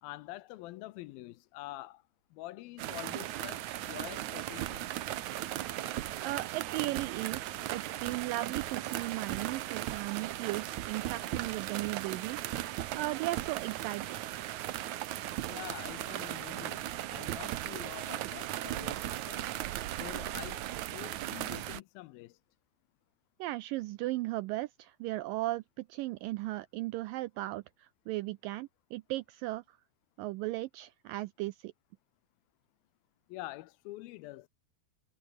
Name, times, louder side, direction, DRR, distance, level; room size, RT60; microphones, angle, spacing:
voice 1, 0.0-2.0 2.3-5.0 15.5-19.4 20.0-22.4 33.3-34.5, left 17 dB, 80° left, 2.4 m, -46 dB
sound 1, 2.8-21.8, right 14 dB, 70° right, 1.9 m, -37 dB
voice 2, 6.2-12.4 12.7-14.2 23.4-29.8 30.2-31.7, right 18 dB, 85° right, 2.0 m, -36 dB
omnidirectional pair, 4.5 m